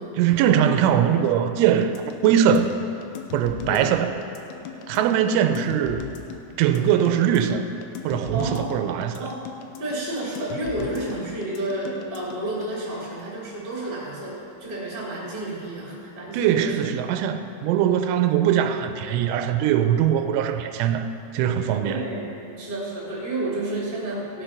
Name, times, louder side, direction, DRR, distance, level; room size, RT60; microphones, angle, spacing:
voice 1, 0.1-2.8 3.3-4.2 4.9-6.1 6.6-7.7 8.0-9.3 16.3-21.1 21.3-22.1, right 9 dB, 85° right, 8 dB, 3.0 m, -21 dB
sound 1, 1.8-12.7, left 7 dB, 80° left, 2.3 m, -38 dB
voice 2, 8.3-8.7 9.2-9.4 9.8-16.8 21.8-22.3 22.6-24.4, right 2 dB, 15° right, -5 dB, 2.0 m, -31 dB
17.0 x 6.7 x 5.8 m, 2.8 s
omnidirectional pair, 5.5 m